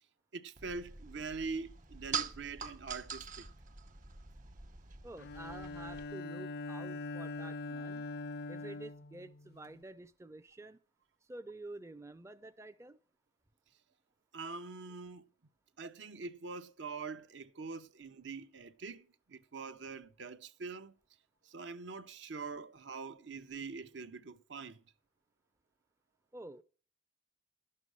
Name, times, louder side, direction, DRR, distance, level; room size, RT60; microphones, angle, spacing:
voice 1, 0.3-3.5 14.3-15.3 15.8-20.9 21.4-24.8, right 4 dB, 70° right, 0.8 m, -44 dB
sound 1, 0.6-6.1, right 6 dB, 45° right, 1.1 m, -44 dB
voice 2, 5.0-8.0 8.5-10.8 11.2-13.0 26.3-26.6, right 2 dB, 15° right, 0.4 m, -49 dB
Bowed string instrument, 5.2-9.8, left 3 dB, 60° left, 0.5 m, -43 dB
11.5 x 6.7 x 6.2 m
head